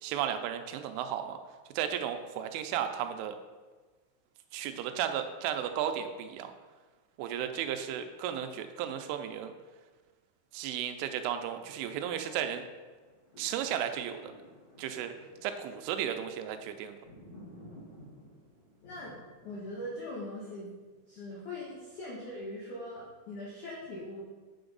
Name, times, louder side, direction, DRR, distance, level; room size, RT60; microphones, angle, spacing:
voice 1, 0.0-1.4 1.8-3.4 4.5-6.5 7.2-9.5 10.5-12.7 13.4-14.3 14.8-15.1 15.4-17.0, right 9 dB, 85° right, 7 dB, 3.1 m, -34 dB
sound 1, 12.9-21.2 21.7-21.8, equal, 40° left, 2.9 m, -55 dB
voice 2, 18.8-20.7 21.1-24.2, left 1 dB, 80° left, -5 dB, 1.7 m, -41 dB
8.7 x 5.9 x 3.9 m, 1.3 s
omnidirectional pair, 5.6 m